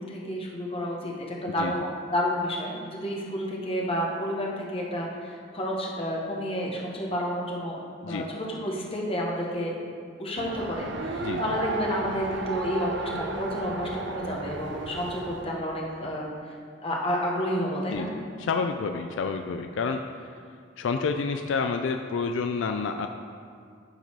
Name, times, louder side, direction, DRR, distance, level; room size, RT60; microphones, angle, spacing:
voice 1, 0.0-7.8 8.1-9.8 10.2-16.5 16.8-18.1, equal, 30° left, -2 dB, 1.2 m, -30 dB
Race car auto racing, 10.4-15.6, right 3 dB, 65° right, 0.6 m, -33 dB
voice 2, 17.9-20.3 20.8-23.1, left 5 dB, 80° left, 6 dB, 0.4 m, -29 dB
10.5 x 4.0 x 4.6 m, 2.2 s
head